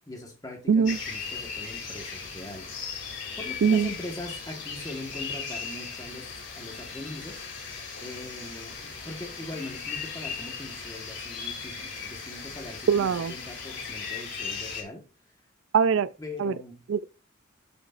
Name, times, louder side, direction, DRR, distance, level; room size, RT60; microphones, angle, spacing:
voice 1, 0.0-3.1 3.4-7.4 8.0-15.0 16.2-16.8, left 1 dB, 20° left, 1.4 m, -41 dB
voice 2, 0.7-1.0 3.6-3.9 12.9-13.3 15.7-16.1 16.4-16.5 16.9-17.0, right 6 dB, 80° right, 0.4 m, -22 dB
sound 1, 0.9-14.8, left 5 dB, 65° left, 2.7 m, -37 dB
11.5 x 5.0 x 2.5 m
head